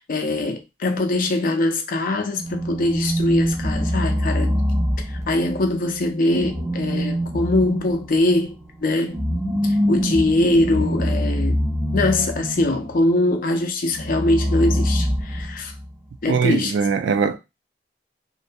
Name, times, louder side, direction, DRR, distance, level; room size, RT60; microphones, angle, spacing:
voice 1, 0.0-4.6 5.3-8.5 8.8-9.2 9.6-11.6 11.9-15.7 16.2-16.7, left 2 dB, 50° left, 0.5 m, -22 dB
sound 1, 2.3-5.7 6.3-12.9 13.9-15.9, equal, 15° right, 0.5 m, -24 dB
voice 2, 16.3-17.4, right 5 dB, 75° right, 0.3 m, -21 dB
2.5 x 2.2 x 2.6 m
head